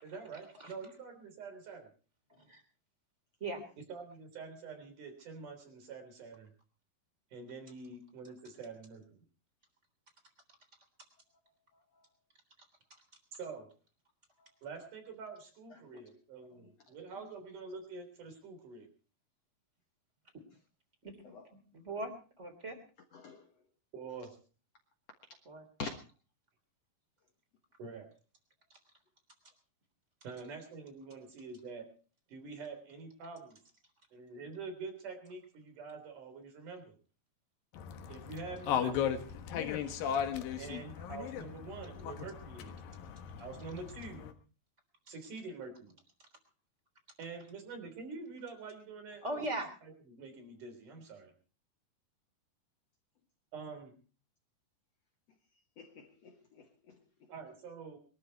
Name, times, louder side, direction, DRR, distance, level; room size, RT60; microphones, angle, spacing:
voice 1, 0.0-1.9 3.9-6.5 7.3-9.2 13.4-13.7 14.6-18.9 23.9-24.3 27.8-28.1 30.2-31.9 32.3-33.6 34.1-36.9 38.1-39.1 40.6-42.8 43.4-44.2 45.1-45.9 47.2-49.2 50.1-51.3 53.5-53.9 57.3-58.0, right 4 dB, 60° right, 5.0 m, -46 dB
voice 2, 2.3-2.6 3.4-3.6 21.0-21.1 21.7-22.1 22.4-22.8 25.4-25.6 28.7-28.8 49.2-49.7, right 2 dB, 20° right, 3.4 m, -39 dB
voice 3, 11.7-12.1 14.4-14.5 15.7-16.2 16.5-17.3 21.2-21.5 23.1-23.5 25.8-26.0 55.8-57.3, left 4 dB, 55° left, 2.2 m, -48 dB
sound 1, 37.7-44.3, left 8 dB, 75° left, 3.1 m, -37 dB
22.0 x 13.0 x 4.6 m
omnidirectional pair, 4.1 m